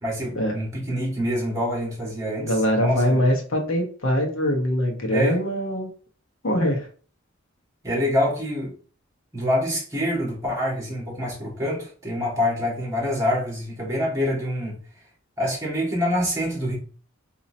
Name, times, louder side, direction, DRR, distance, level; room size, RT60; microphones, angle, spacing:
voice 1, 0.0-2.5 2.8-3.2 5.1-5.4 7.8-8.7 9.3-14.8 15.4-16.8, equal, 15° right, -4 dB, 1.6 m, -26 dB
voice 2, 2.4-5.9 6.4-6.9, equal, 75° left, 2 dB, 1.0 m, -23 dB
4.1 x 2.8 x 2.6 m, 0.41 s
head